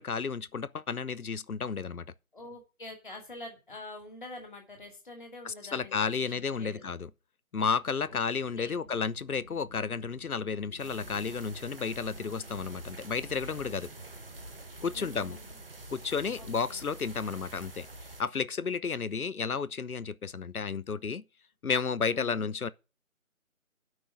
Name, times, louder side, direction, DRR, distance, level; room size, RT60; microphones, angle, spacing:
voice 1, 0.0-2.0 5.4-7.1 7.5-13.9 14.8-15.4 15.9-17.9 18.2-21.2 21.6-22.7, left 5 dB, 90° left, 0.8 m, -32 dB
voice 2, 2.3-6.8 8.1-8.2 8.5-8.8 14.9-15.6 16.4-16.8 22.1-22.5, left 2 dB, 35° left, 2.7 m, -46 dB
sound 1, 7.6-19.7, equal, 5° left, 1.4 m, -57 dB
sound 2, 10.8-18.2, right 2 dB, 40° right, 1.1 m, -46 dB
8.7 x 6.2 x 8.3 m
figure-of-eight pair, 165°, 42 cm